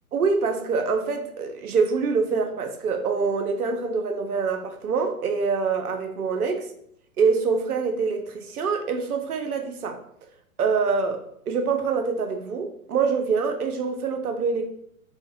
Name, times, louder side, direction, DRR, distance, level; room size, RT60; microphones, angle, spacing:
voice 1, 0.1-6.6 7.2-10.0 10.6-14.7, right 5 dB, 85° right, 5 dB, 0.5 m, -25 dB
2.4 x 2.1 x 2.5 m, 0.69 s
figure-of-eight pair, 120°, 43 cm